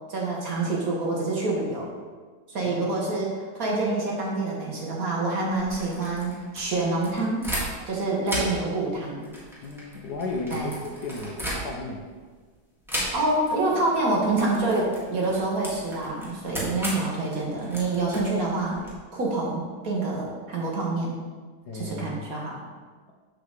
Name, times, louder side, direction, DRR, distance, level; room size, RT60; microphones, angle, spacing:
voice 1, 0.1-1.9 2.5-7.4 7.9-9.2 10.5-10.7 13.1-18.8 19.1-21.1 21.7-22.6, right 2 dB, 50° right, -3 dB, 1.7 m, -27 dB
voice 2, 2.6-3.1 8.1-8.2 9.6-12.0 16.6-16.8 21.7-22.2, left 3 dB, 65° left, 1 dB, 1.2 m, -35 dB
sound 1, 5.5-7.9 8.2-12.0 12.9-13.5 13.8-14.0 14.3-18.9, right 1 dB, ahead, 1.6 m, -35 dB
7.6 x 3.9 x 6.5 m, 1.5 s
omnidirectional pair, 2.2 m